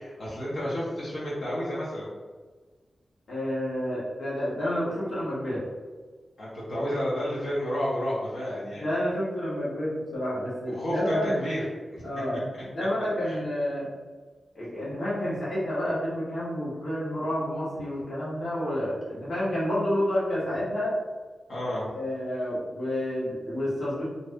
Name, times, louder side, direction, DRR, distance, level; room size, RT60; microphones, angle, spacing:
voice 1, 0.0-2.1 6.4-8.8 10.7-11.6 11.9-12.0 13.2-13.4 21.5-21.9, equal, 85° left, -9 dB, 1.1 m, -31 dB
voice 2, 3.3-5.6 8.5-11.4 12.0-12.4 12.7-13.9 14.5-20.9 21.9-24.0, equal, 65° left, -8 dB, 1.1 m, -29 dB
2.6 x 2.6 x 3.4 m, 1.4 s
wide cardioid pair, 110°, 0 cm